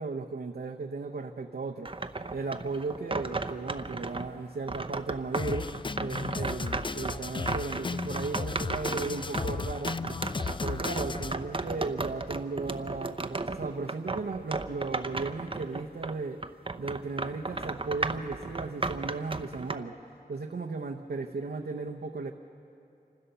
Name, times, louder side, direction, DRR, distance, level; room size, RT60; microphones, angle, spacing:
voice 1, 0.0-2.0 2.3-10.0 10.6-16.4 16.8-20.0 20.3-22.3, right 3 dB, 90° right, 1 dB, 0.8 m, -35 dB
sound 1, 1.9-4.3 4.7-16.2 16.4-19.8, right 3 dB, 35° right, 0.6 m, -35 dB
Drum kit, 5.3-11.3, left 4 dB, 30° left, 0.4 m, -35 dB
26.0 x 15.5 x 6.8 m, 2.7 s
wide cardioid pair, 70°, 17 cm